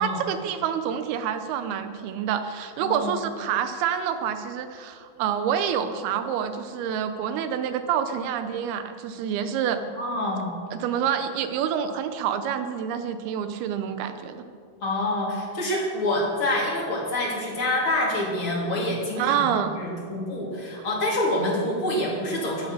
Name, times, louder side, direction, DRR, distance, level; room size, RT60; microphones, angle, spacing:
voice 1, 0.0-9.8 10.7-14.5 19.2-19.8, right 8 dB, 85° right, 9 dB, 2.7 m, -27 dB
voice 2, 2.8-3.1 9.8-10.5 14.8-22.7, left 1 dB, 35° left, -3 dB, 3.7 m, -27 dB
14.5 x 12.0 x 6.5 m, 2.2 s
omnidirectional pair, 4.4 m